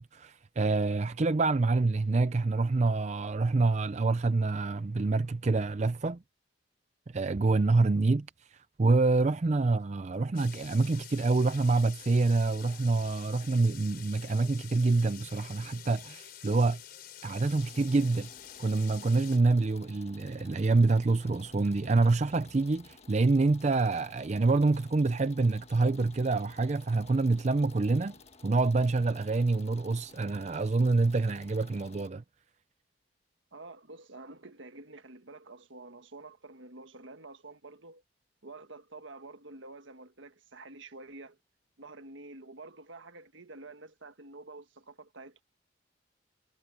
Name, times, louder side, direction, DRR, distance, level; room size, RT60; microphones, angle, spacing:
voice 1, 0.0-6.2 7.1-8.3 8.5-16.8 17.2-18.3 18.6-28.1 28.4-32.2, right 3 dB, 35° right, 0.5 m, -26 dB
sound 1, 10.3-19.4, left 10 dB, 50° left, 4.9 m, -48 dB
sound 2, 17.4-32.1, left 4 dB, 35° left, 1.6 m, -55 dB
voice 2, 33.5-38.0 38.4-41.4 41.8-45.4, right 2 dB, 80° right, 1.7 m, -48 dB
head